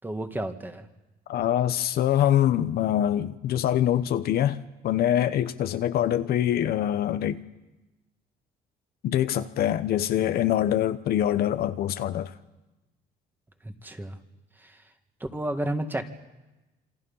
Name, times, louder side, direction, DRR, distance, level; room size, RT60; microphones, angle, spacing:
voice 1, 0.0-0.9 13.6-14.2 14.6-14.8 15.3-16.0, right 1 dB, 10° right, 2.0 m, -31 dB
voice 2, 1.3-7.4 9.0-12.3, left 11 dB, 65° left, 1.0 m, -24 dB
27.0 x 24.5 x 5.6 m
cardioid pair, 110°, 17 cm